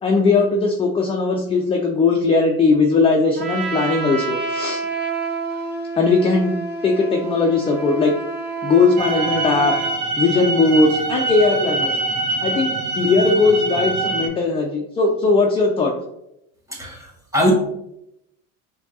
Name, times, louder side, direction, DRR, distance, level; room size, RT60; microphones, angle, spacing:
voice 1, 0.0-4.8 6.0-6.5 6.8-8.1 8.6-9.7 10.2-12.0 12.4-15.9, left 3 dB, 15° left, 1 dB, 0.3 m, -18 dB
Trumpet, 3.4-10.0, right 4 dB, 25° right, 0.9 m, -28 dB
sound 1, 9.0-14.3, right 3 dB, 75° right, 0.9 m, -24 dB
voice 2, 16.7-17.5, left 1 dB, 10° right, -2 dB, 1.3 m, -21 dB
5.1 x 2.3 x 2.6 m, 0.80 s
supercardioid pair, 100°, 39 cm